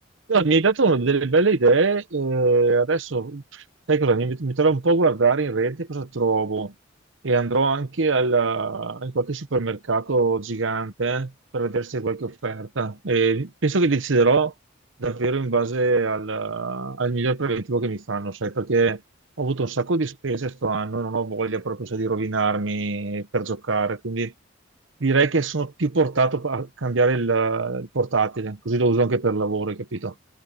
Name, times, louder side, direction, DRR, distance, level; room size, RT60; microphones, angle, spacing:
voice 1, 0.3-6.7 7.2-14.5 15.0-19.0 19.4-24.3 25.0-30.1, right 3 dB, 75° right, 0.9 m, -23 dB
head